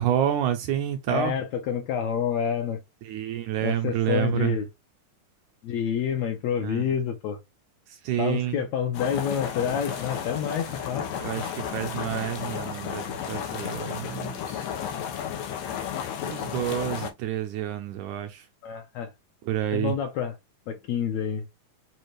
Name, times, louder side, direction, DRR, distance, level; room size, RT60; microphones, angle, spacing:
voice 1, 0.0-1.4 3.1-4.6 6.6-6.8 8.0-8.6 11.2-14.7 16.3-18.4 19.4-19.9, right 11 dB, 80° right, 1.8 m, -28 dB
voice 2, 1.1-2.8 3.6-4.7 5.6-7.4 8.2-11.1 18.6-19.1 19.7-20.4 20.7-21.4, left 8 dB, 70° left, 1.7 m, -28 dB
sound 1, 8.9-17.1, left 8 dB, 90° left, 2.6 m, -33 dB
sound 2, 9.7-13.8 14.7-14.8, right 4 dB, 55° right, 0.7 m, -48 dB
7.0 x 2.4 x 3.1 m
omnidirectional pair, 3.8 m